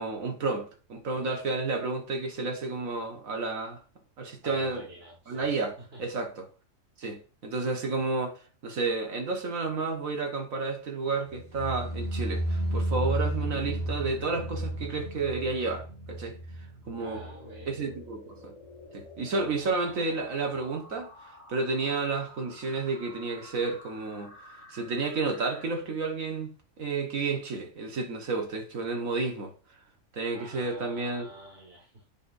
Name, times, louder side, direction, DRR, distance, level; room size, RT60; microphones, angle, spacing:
voice 1, 0.0-3.8 4.2-4.9 5.3-5.7 6.0-6.5 7.0-16.4 16.9-17.2 17.7-18.5 18.9-26.5 26.8-29.5 30.1-31.3, right 3 dB, 85° right, 1.8 m, -31 dB
voice 2, 4.4-5.5 5.9-6.0 17.0-17.9 30.3-32.1, right 1 dB, 50° right, 2.2 m, -48 dB
sound 1, 11.3-18.4 18.7-19.2 19.5-19.6, right 1 dB, 50° left, 2.1 m, -33 dB
sound 2, 16.9-25.7, left 1 dB, 25° left, 2.4 m, -51 dB
9.3 x 5.8 x 2.6 m
omnidirectional pair, 1.4 m